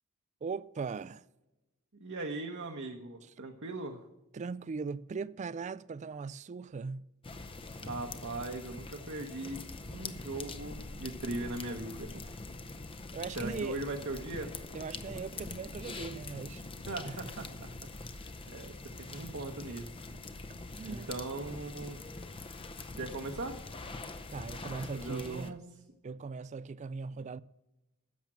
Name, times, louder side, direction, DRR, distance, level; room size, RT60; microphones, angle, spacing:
voice 1, 0.4-1.2 4.3-7.1 13.1-13.8 14.7-16.6 17.0-17.7 20.7-21.1 24.3-25.6 26.0-27.4, right 5 dB, 30° right, 0.3 m, -39 dB
voice 2, 2.0-4.0 7.8-12.2 13.4-14.5 16.9-17.5 18.0-19.9 20.8-22.0 22.9-23.6 24.9-25.6, right 2 dB, 60° right, 1.0 m, -39 dB
sound 1, 7.2-25.5, left 3 dB, 25° left, 0.6 m, -44 dB
10.5 x 7.3 x 7.4 m
head